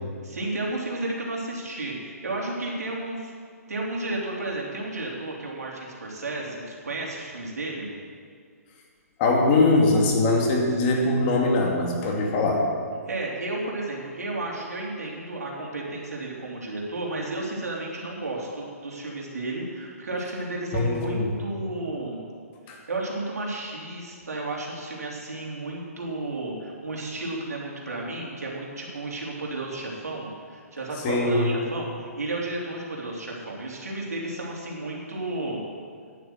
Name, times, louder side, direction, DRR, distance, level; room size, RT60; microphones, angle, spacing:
voice 1, 0.2-3.3 3.7-7.9 13.1-22.2 22.9-35.6, right 2 dB, 80° right, -3 dB, 3.9 m, -32 dB
voice 2, 9.2-12.7 20.7-21.3 22.7-22.8 31.0-31.5, left 2 dB, 35° left, -1 dB, 2.7 m, -22 dB
10.5 x 9.4 x 8.2 m, 2.1 s
hypercardioid pair, 140°, 8 cm